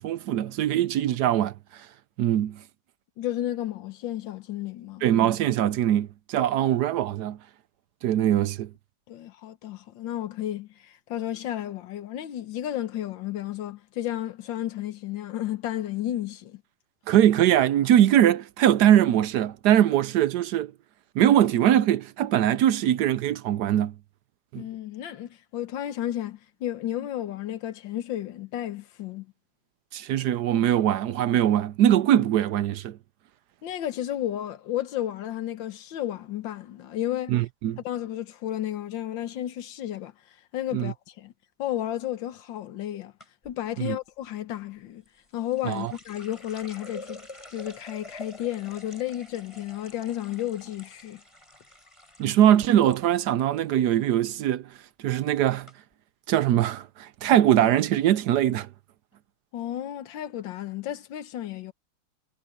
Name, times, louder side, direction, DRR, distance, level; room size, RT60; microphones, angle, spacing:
voice 1, 0.0-1.5 2.2-2.6 5.0-7.4 8.0-8.7 17.1-20.7 21.2-23.9 24.5-24.6 29.9-33.0 37.3-37.8 40.7-40.9 43.8-44.0 45.6-45.9 52.2-54.6 55.0-55.7 56.3-58.7, right 11 dB, 70° right, 1.1 m, -22 dB
voice 2, 3.2-5.0 9.1-16.6 24.6-29.3 33.6-37.3 37.8-40.1 40.5-41.3 41.6-43.1 43.4-45.0 45.3-47.2 47.5-51.2 59.5-61.7, left 12 dB, 85° left, 1.7 m, -32 dB
sound 1, 43.2-43.6 45.1-53.0 53.3-53.9 54.2-54.6 55.2-55.3 55.7-55.8, left 1 dB, 15° left, 6.0 m, -47 dB
omnidirectional pair, 2.0 m